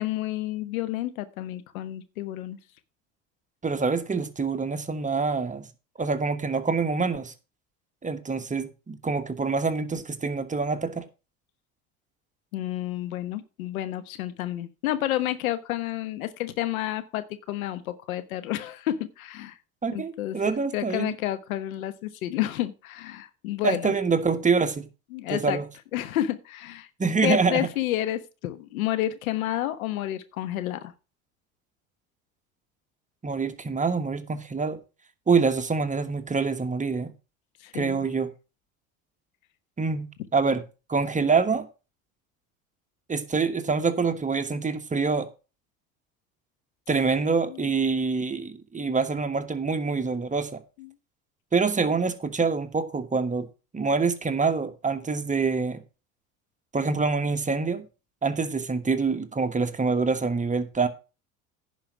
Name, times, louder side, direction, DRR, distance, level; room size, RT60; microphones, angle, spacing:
voice 1, 0.0-2.6 12.5-19.5 19.9-20.4 20.7-23.9 25.1-25.6 25.9-26.9 27.2-30.9 37.6-38.1 47.5-47.7 48.8-48.9 50.0-50.1 50.8-50.9, left 13 dB, 80° left, 1.1 m, -30 dB
voice 2, 3.6-5.7 6.0-7.3 8.0-11.1 19.8-21.1 23.6-24.9 25.3-25.6 27.0-27.7 33.2-34.8 35.3-37.1 37.7-38.3 39.8-40.6 40.9-41.7 43.1-45.3 46.9-50.6 51.5-53.5 53.7-55.8 56.7-57.8 58.2-60.9, right 4 dB, 20° right, 1.2 m, -26 dB
10.5 x 5.2 x 6.1 m
hypercardioid pair, 75°, 41 cm